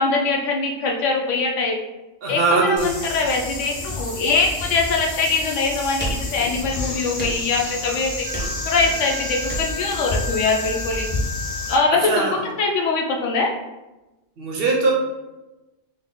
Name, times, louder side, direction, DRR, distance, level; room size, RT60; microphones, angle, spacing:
voice 1, 0.0-1.8 2.3-8.3 8.7-11.1 11.7-13.5, left 3 dB, 80° left, 1 dB, 0.9 m, -22 dB
voice 2, 2.2-3.0 11.9-12.4 14.4-14.9, right 3 dB, 60° right, -1 dB, 0.7 m, -21 dB
sound 1, 2.8-11.8, left 2 dB, 50° left, 0.4 m, -30 dB
sound 2, 6.0-6.8 7.2-7.8 8.3-9.0 9.5-10.0, right 1 dB, 10° left, 0.7 m, -31 dB
Wind instrument woodwind instrument, 8.2-12.1, left 3 dB, 90° right, 1.0 m, -34 dB
3.6 x 2.0 x 3.8 m, 1.1 s
omnidirectional pair, 1.3 m